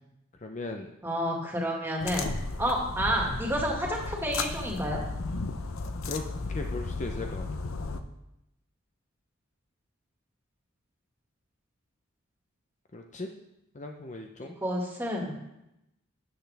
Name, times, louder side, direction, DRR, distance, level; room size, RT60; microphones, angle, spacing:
voice 1, 0.4-0.9 6.0-6.2 6.5-7.5 12.9-13.3 13.7-14.5, left 2 dB, 35° left, 3 dB, 0.7 m, -37 dB
voice 2, 1.0-5.0 14.6-15.4, equal, 10° right, -2 dB, 2.0 m, -30 dB
sound 1, 2.0-8.0, left 3 dB, 80° left, 0.7 m, -34 dB
13.0 x 8.0 x 3.5 m, 0.87 s
head